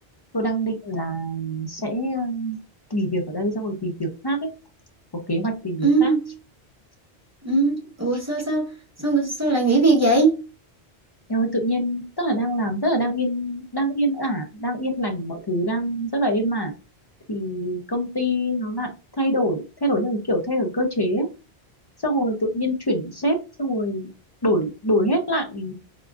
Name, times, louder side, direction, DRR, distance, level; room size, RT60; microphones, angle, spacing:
voice 1, 0.3-2.6 2.9-4.5 5.3-6.1 11.3-16.7 17.3-18.9 19.2-21.3 22.0-24.1 24.4-25.7, equal, 40° left, 0.3 m, -25 dB
voice 2, 5.8-6.3 7.4-10.5, right 3 dB, 15° right, 0.8 m, -20 dB
3.6 x 2.3 x 2.3 m
omnidirectional pair, 1.1 m